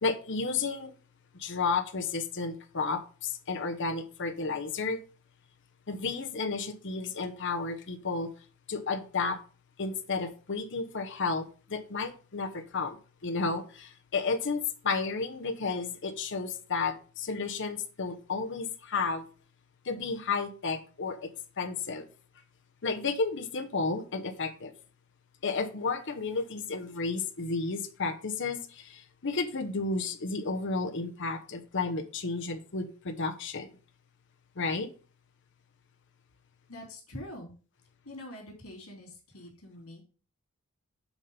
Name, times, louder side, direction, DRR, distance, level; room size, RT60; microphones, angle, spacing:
voice 1, 0.0-0.9 1.3-5.0 5.9-8.3 8.7-9.4 9.8-19.3 19.8-21.3 21.6-22.1 22.8-24.7 25.4-33.7 34.6-34.9, left 4 dB, 55° left, 0.9 m, -32 dB
voice 2, 36.7-37.5 38.0-40.0, left 1 dB, 85° left, 3.1 m, -44 dB
7.1 x 4.3 x 5.3 m
head